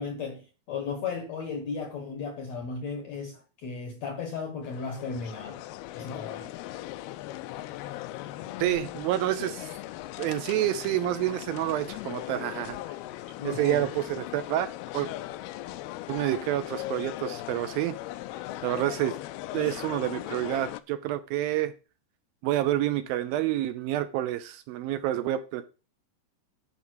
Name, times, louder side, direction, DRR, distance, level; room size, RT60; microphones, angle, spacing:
voice 1, 0.0-5.6 5.9-6.5 13.4-13.9, left 5 dB, 65° left, 5 dB, 1.7 m, -35 dB
sound 1, 4.6-20.8, left 15 dB, 85° left, 2.6 m, -39 dB
voice 2, 8.6-9.7 10.2-12.8 13.4-15.1 16.1-18.0 18.6-19.1 19.5-21.7 22.4-25.6, right 13 dB, 80° right, 11 dB, 2.2 m, -28 dB
11.0 x 5.3 x 6.4 m, 0.35 s
omnidirectional pair, 4.5 m